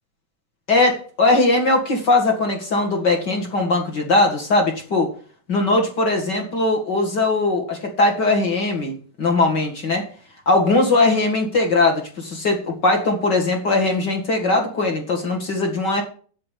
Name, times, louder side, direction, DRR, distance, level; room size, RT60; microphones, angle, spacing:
voice 1, 0.7-5.1 5.5-10.1 10.5-16.0, left 2 dB, 40° left, 2 dB, 2.4 m, -20 dB
8.4 x 7.7 x 8.5 m, 0.42 s
omnidirectional pair, 3.4 m